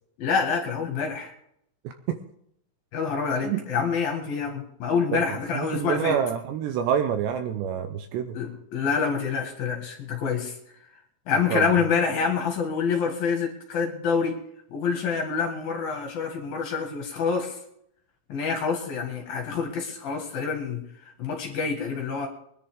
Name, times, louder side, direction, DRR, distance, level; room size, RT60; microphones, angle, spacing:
voice 1, 0.2-1.3 2.9-6.2 8.3-10.6 11.3-14.4 14.7-17.6 18.3-20.8 21.2-22.3, left 5 dB, 60° left, 3 dB, 3.1 m, -27 dB
voice 2, 1.8-2.2 3.4-3.6 5.1-8.4 11.5-11.7, right 8 dB, 75° right, 7 dB, 2.7 m, -27 dB
23.0 x 10.5 x 3.7 m, 0.71 s
omnidirectional pair, 5.7 m